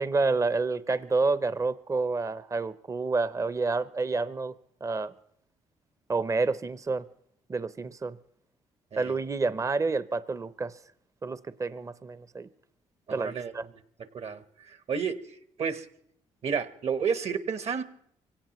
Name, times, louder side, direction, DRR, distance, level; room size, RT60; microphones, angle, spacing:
voice 1, 0.0-4.5 4.8-5.1 6.1-7.1 7.5-8.2 9.0-10.8 11.2-12.5 13.1-13.7, right 3 dB, 25° right, 0.6 m, -29 dB
voice 2, 13.1-13.5 14.1-15.9 16.4-17.8, right 6 dB, 55° right, 1.0 m, -31 dB
23.5 x 17.0 x 3.0 m
supercardioid pair, 65°, 13 cm